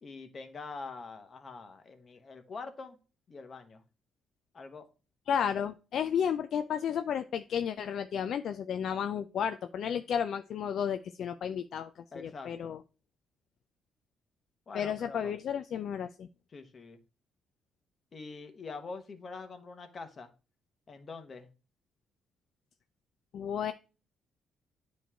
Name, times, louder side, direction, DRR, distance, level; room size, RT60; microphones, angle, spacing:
voice 1, 0.0-3.0 3.3-3.8 4.5-4.9 12.1-12.8 14.7-15.3 16.5-17.0 18.1-20.3 20.9-21.5, left 4 dB, 40° left, 8 dB, 1.2 m, -44 dB
voice 2, 5.3-11.9 12.1-12.8 14.7-16.3 23.3-23.7, left 8 dB, 65° left, 9 dB, 0.4 m, -32 dB
9.2 x 3.2 x 4.4 m, 0.33 s
cardioid pair, 90°, 0 cm